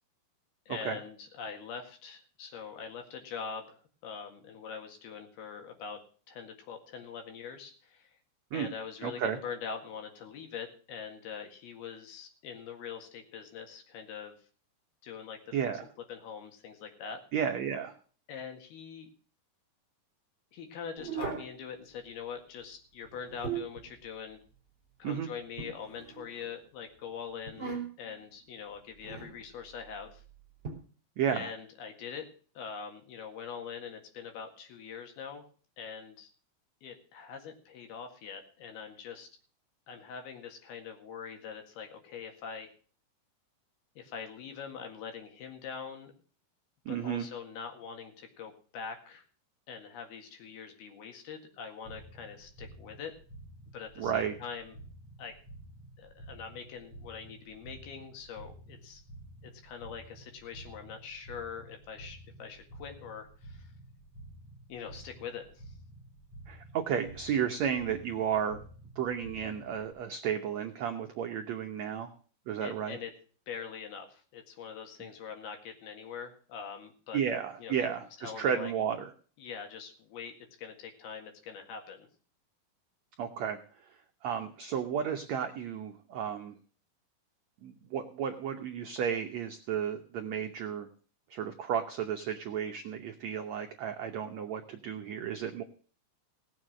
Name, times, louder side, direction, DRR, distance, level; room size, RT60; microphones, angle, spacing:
voice 1, 0.7-6.0 6.3-8.2 8.5-14.4 15.0-15.6 16.1-17.2 18.3-19.1 20.5-24.4 25.0-27.7 28.0-30.2 31.3-32.3 32.6-35.4 35.8-36.3 36.8-39.3 39.9-42.7 44.0-46.1 46.9-49.3 49.7-53.1 53.7-54.7 55.2-55.3 56.0-59.0 59.4-63.7 64.7-65.8 72.6-73.1 73.5-77.2 77.6-77.8 78.2-78.7 79.4-82.1, left 6 dB, 80° left, 5 dB, 3.8 m, -43 dB
voice 2, 9.0-9.4 15.5-15.9 17.3-17.9 25.0-25.3 31.2-31.5 46.8-47.3 54.0-54.3 66.5-68.6 68.9-72.1 72.5-73.0 77.1-79.1 83.2-83.6 84.2-86.6 87.6-90.9 91.3-95.6, right 8 dB, 80° right, 4 dB, 1.5 m, -33 dB
sound 1, 21.0-21.5 23.0-23.9 25.6-26.5 27.5-28.1 29.0-29.4 30.6-30.7, right 6 dB, 15° right, 4.4 m, -38 dB
sound 2, 51.9-69.9, right 1 dB, 35° left, 4.5 m, -51 dB
17.5 x 7.3 x 6.3 m, 0.43 s
omnidirectional pair, 4.4 m